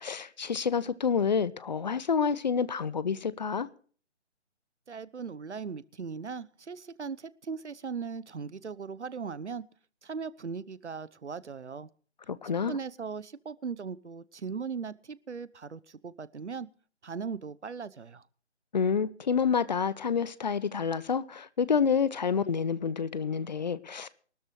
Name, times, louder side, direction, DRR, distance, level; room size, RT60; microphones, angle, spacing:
voice 1, 0.0-3.7 12.3-12.8 18.7-24.1, left 6 dB, 40° left, 0.8 m, -28 dB
voice 2, 4.9-9.6 10.0-11.9 12.7-16.7 17.0-18.2, right 5 dB, 75° right, 1.0 m, -38 dB
23.5 x 13.0 x 3.2 m
figure-of-eight pair, 150°, 35 cm